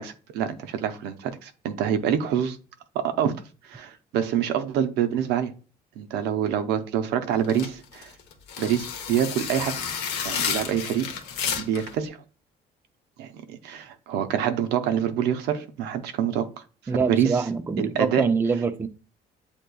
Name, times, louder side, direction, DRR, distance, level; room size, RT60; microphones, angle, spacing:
voice 1, 0.0-2.6 3.0-3.4 3.6-5.5 6.0-8.1 8.6-9.8 10.2-11.1 11.6-12.2 13.2-16.5 16.8-17.5 17.8-18.3, right 9 dB, 85° right, 0.6 m, -26 dB
sound 1, 7.4-11.9, left 7 dB, 80° left, 0.9 m, -31 dB
voice 2, 16.9-18.9, right 5 dB, 15° right, 0.4 m, -25 dB
8.0 x 2.9 x 2.2 m
cardioid pair, 110°, 17 cm